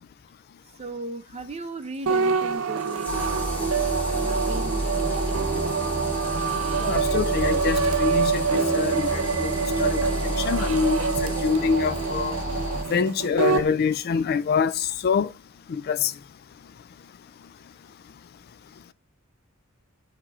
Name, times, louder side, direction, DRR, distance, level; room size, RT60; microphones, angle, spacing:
voice 1, 0.8-5.7 11.3-11.5, right 2 dB, 30° right, 0.6 m, -38 dB
Water tap faucet / Sink (filling or washing), 1.2-13.1 14.4-14.5, equal, 10° left, 0.8 m, -42 dB
sound 1, 2.1-13.7, right 5 dB, 70° right, 0.7 m, -26 dB
sound 2, 3.1-12.8, right 1 dB, 30° left, 1.5 m, -30 dB
voice 2, 6.8-9.5 9.8-12.4 12.9-15.3 15.7-16.1, left 6 dB, 45° left, 0.3 m, -25 dB
7.2 x 2.9 x 4.8 m
head